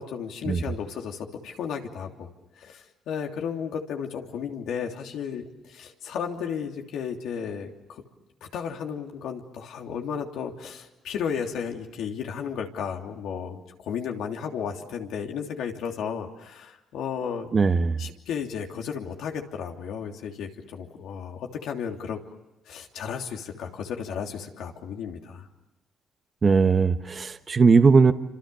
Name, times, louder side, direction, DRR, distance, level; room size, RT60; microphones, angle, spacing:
voice 1, 0.0-2.3 2.6-8.0 8.5-17.5 18.0-22.2 22.7-25.5, left 7 dB, 80° left, 2 dB, 3.1 m, -34 dB
voice 2, 17.5-17.9 26.4-28.1, right 4 dB, 35° right, 9 dB, 1.3 m, -19 dB
28.0 x 26.5 x 7.0 m, 1.0 s
cardioid pair, 90°, 0 cm